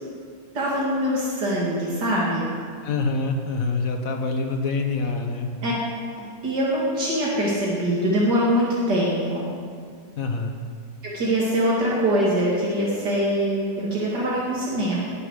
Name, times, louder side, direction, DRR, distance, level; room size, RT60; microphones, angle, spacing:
voice 1, 0.5-2.5 5.6-5.7 6.2-9.5 11.0-15.0, equal, 90° right, -6 dB, 2.9 m, -23 dB
voice 2, 2.8-5.5 10.2-10.6, left 3 dB, 55° left, 4 dB, 1.7 m, -25 dB
18.0 x 7.8 x 6.5 m, 2.1 s
omnidirectional pair, 1.8 m